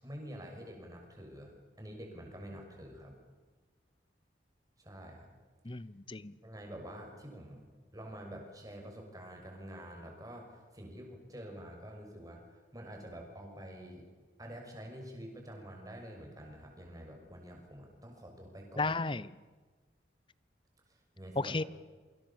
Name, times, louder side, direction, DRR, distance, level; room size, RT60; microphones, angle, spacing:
voice 1, 0.0-3.2 4.8-5.3 5.7-5.8 6.4-12.4 12.7-14.1 14.4-19.0 20.9-21.6, equal, 20° right, 1 dB, 6.1 m, -47 dB
voice 2, 5.6-6.3 18.8-19.3 21.4-21.6, left 3 dB, 25° left, 18 dB, 0.7 m, -33 dB
28.5 x 24.5 x 7.3 m, 1.4 s
head